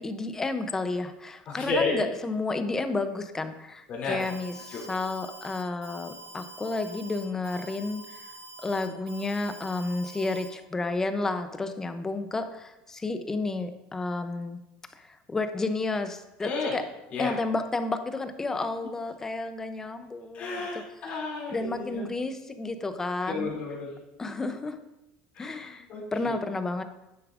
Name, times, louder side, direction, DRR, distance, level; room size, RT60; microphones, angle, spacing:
voice 1, 0.0-8.3 8.6-14.6 15.0-16.8 17.2-20.8 21.5-23.5 24.2-24.8 25.4-26.8, left 3 dB, 15° left, 9 dB, 0.5 m, -31 dB
voice 2, 1.5-2.0 3.9-4.2 4.7-4.9 16.4-16.7 17.1-17.3 20.3-22.0 23.3-23.9 25.3-26.4, left 3 dB, 40° left, -4 dB, 2.5 m, -32 dB
Alarm, 4.2-10.5, right 3 dB, 75° right, 2.7 m, -46 dB
9.5 x 6.8 x 2.4 m, 0.96 s
cardioid pair, 150°, 4 cm